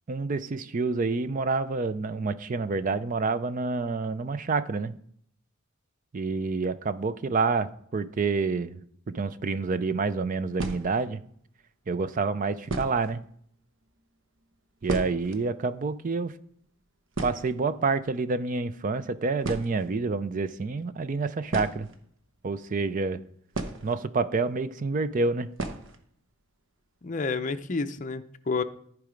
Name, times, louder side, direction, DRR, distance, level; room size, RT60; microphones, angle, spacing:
voice 1, 0.1-4.9 6.1-11.2 11.9-13.2 14.8-16.3 17.2-21.9 22.4-23.2 23.8-25.5, right 4 dB, 40° right, 13 dB, 0.4 m, -28 dB
sound 1, 9.7-9.8 10.5-11.2 12.1-12.2 12.6-13.2 13.5-13.6 13.8-14.0 14.4-15.5 15.7-15.8 16.1-16.4 16.7-16.8 17.1-18.0 19.0-19.1 19.4-20.0 21.4-22.5 23.5-24.3 24.6-24.7 25.6-26.0 26.3-26.4 26.8-26.9 27.3-27.7, right 2 dB, 65° right, 0.9 m, -35 dB
voice 2, 27.0-28.6, left 4 dB, 40° left, 8 dB, 0.5 m, -30 dB
14.0 x 4.7 x 5.1 m, 0.64 s
head